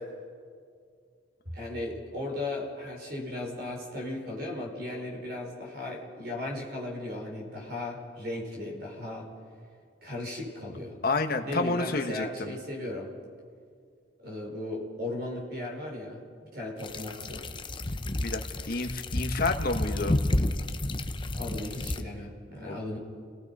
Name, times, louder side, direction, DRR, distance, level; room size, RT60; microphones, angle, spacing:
voice 1, 1.5-9.3 10.0-10.9 11.4-13.1 14.2-16.2 16.5-17.4 21.3-23.0, left 2 dB, 55° right, 1 dB, 5.0 m, -36 dB
voice 2, 11.0-12.6 18.2-18.4 18.7-20.2 22.6-22.8, left 3 dB, 50° left, 5 dB, 1.2 m, -29 dB
sound 1, 16.8-22.0, left 1 dB, 25° left, 0.7 m, -31 dB
30.0 x 18.5 x 5.4 m, 2.2 s
head